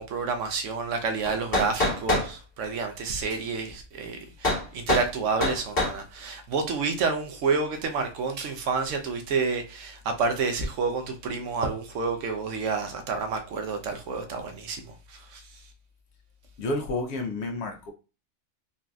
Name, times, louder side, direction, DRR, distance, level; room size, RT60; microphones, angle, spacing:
voice 1, 0.0-15.4, right 4 dB, 85° right, 1.0 m, -29 dB
sound 1, 1.2-2.3 4.4-4.6 4.9-5.1 5.4-6.0, left 2 dB, 50° left, 1.4 m, -25 dB
voice 2, 16.6-17.9, left 2 dB, 70° left, 0.9 m, -30 dB
3.9 x 2.5 x 2.3 m
omnidirectional pair, 1.2 m